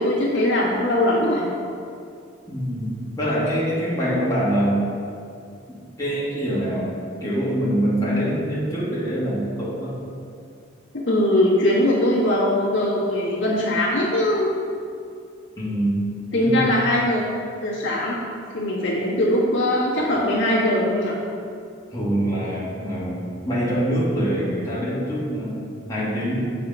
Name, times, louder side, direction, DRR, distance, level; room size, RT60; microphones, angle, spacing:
voice 1, 0.0-1.5 10.9-14.5 16.3-17.2 17.6-18.2 18.5-21.2, left 1 dB, 80° left, -6 dB, 1.6 m, -21 dB
voice 2, 2.5-4.9 5.7-6.9 7.2-10.0 15.6-16.1 16.4-16.8 21.9-23.2 23.4-26.4, equal, 20° left, -9 dB, 1.7 m, -24 dB
7.3 x 4.2 x 5.3 m, 2.4 s
head